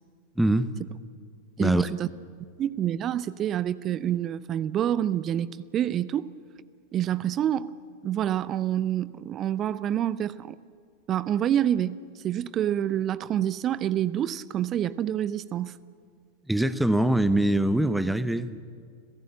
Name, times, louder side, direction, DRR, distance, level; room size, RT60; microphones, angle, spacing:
voice 1, 0.4-0.7 1.6-1.9 16.5-18.6, right 1 dB, 5° right, 1.0 m, -23 dB
voice 2, 1.6-2.1 2.6-6.3 6.9-7.7 8.0-10.6 11.1-15.8, right 10 dB, 30° right, 0.6 m, -27 dB
29.5 x 16.5 x 8.7 m
figure-of-eight pair, 90°, 0 cm